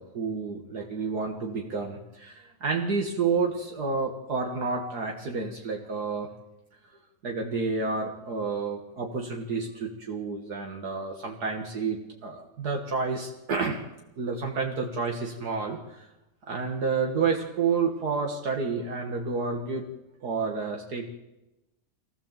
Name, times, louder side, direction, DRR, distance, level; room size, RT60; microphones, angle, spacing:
voice 1, 0.0-6.3 7.2-13.8 14.2-16.1 16.5-19.9 20.2-21.1, right 4 dB, 65° right, 1 dB, 2.2 m, -30 dB
23.0 x 16.0 x 7.4 m, 0.96 s
omnidirectional pair, 1.8 m